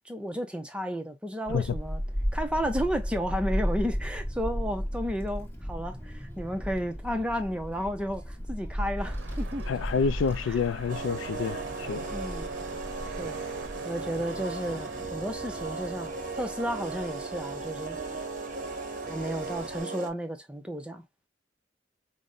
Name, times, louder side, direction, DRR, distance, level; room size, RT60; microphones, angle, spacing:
voice 1, 0.0-2.0 2.3-9.6 10.4-10.6 12.1-12.5 13.2-13.4 13.8-18.0 19.1-21.0, equal, 5° right, 0.5 m, -32 dB
Child speech kid speaking / Wind, 1.4-19.8, equal, 10° left, 1.1 m, -36 dB
sound 1, 9.0-15.1, right 4 dB, 80° right, 0.6 m, -46 dB
voice 2, 9.7-12.1, left 6 dB, 85° left, 0.3 m, -28 dB
sound 2, 10.9-20.1, right 4 dB, 45° right, 0.7 m, -36 dB
5.0 x 2.0 x 2.5 m
head